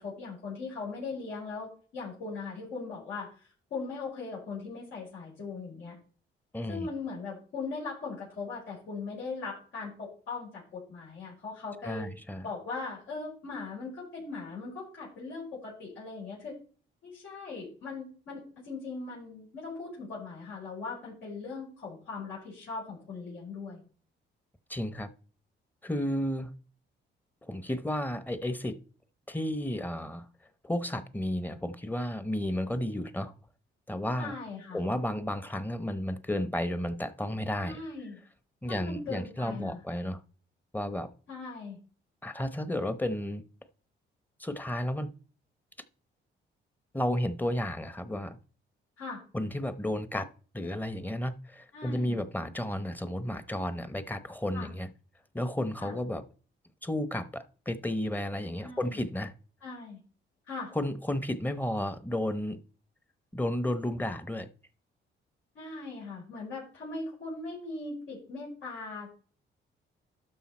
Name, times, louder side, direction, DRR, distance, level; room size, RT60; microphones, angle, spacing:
voice 1, 0.0-6.0 6.7-12.1 12.4-16.6 17.0-23.8 34.2-34.8 37.6-38.2 38.7-39.8 41.3-41.8 49.0-49.2 51.7-52.2 54.5-54.7 55.8-56.0 58.6-59.0 59.6-60.0 60.5-60.7 65.6-69.1, left 4 dB, 85° left, 5.2 m, -39 dB
voice 2, 6.5-6.9 11.8-12.4 24.7-25.1 25.8-26.5 27.4-28.8 29.3-30.3 30.6-33.3 33.9-34.3 34.7-37.8 38.6-40.2 40.7-41.1 42.2-43.4 44.4-45.1 46.9-48.4 49.3-50.3 50.5-54.9 55.3-56.2 56.8-59.3 60.7-62.6 63.3-64.5, left 1 dB, 10° left, 0.9 m, -32 dB
12.0 x 5.6 x 4.3 m
cardioid pair, 90°, 20 cm